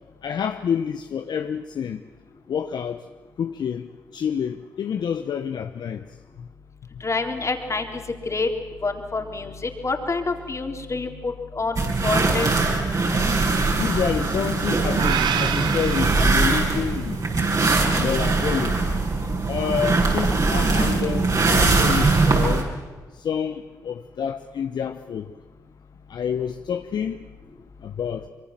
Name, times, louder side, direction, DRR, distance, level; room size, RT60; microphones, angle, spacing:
voice 1, 0.2-2.0 2.5-3.0 3.4-6.0 13.8-17.2 17.9-18.9 19.5-22.7 23.1-25.3 26.1-27.2 27.8-28.3, left 7 dB, 65° left, 1.0 m, -28 dB
voice 2, 7.0-8.5 8.8-12.5, left 3 dB, 40° left, 3.7 m, -27 dB
sound 1, 11.8-22.6, right 3 dB, 50° right, 6.2 m, -21 dB
sound 2, 15.0-17.2, right 9 dB, 75° right, 1.1 m, -28 dB
24.5 x 23.0 x 7.6 m
supercardioid pair, 50°, 8 cm